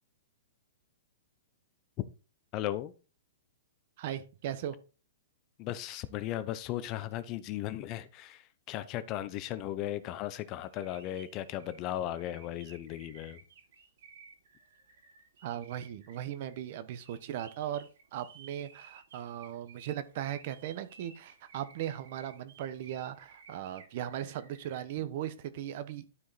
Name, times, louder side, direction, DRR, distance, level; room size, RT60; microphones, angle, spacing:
voice 1, 2.5-2.9 5.6-13.4, left 13 dB, 30° left, 0.6 m, -36 dB
voice 2, 4.0-4.8 15.4-26.0, right 11 dB, 45° right, 1.0 m, -38 dB
sound 1, 10.6-24.8, right 6 dB, 70° right, 3.2 m, -56 dB
12.0 x 4.8 x 4.1 m
hypercardioid pair, 160°, 0 cm